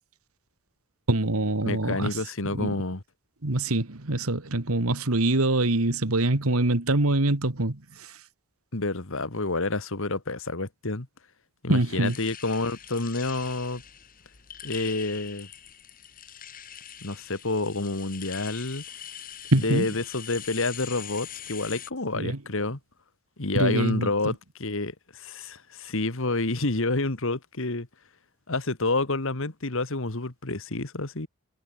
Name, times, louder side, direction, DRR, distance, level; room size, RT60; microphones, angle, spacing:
voice 1, 1.1-2.2 2.5-2.7 3.4-8.2 11.7-12.2 19.5-19.9 22.1-22.4 23.5-24.3, right 2 dB, 85° right, 2.0 m, -24 dB
voice 2, 1.6-3.0 8.7-11.1 11.6-13.8 14.6-15.5 17.0-18.8 19.6-22.8 23.4-27.9 28.5-31.3, left 2 dB, 65° left, 2.0 m, -29 dB
sound 1, 12.0-21.9, left 10 dB, 40° left, 1.6 m, -42 dB
head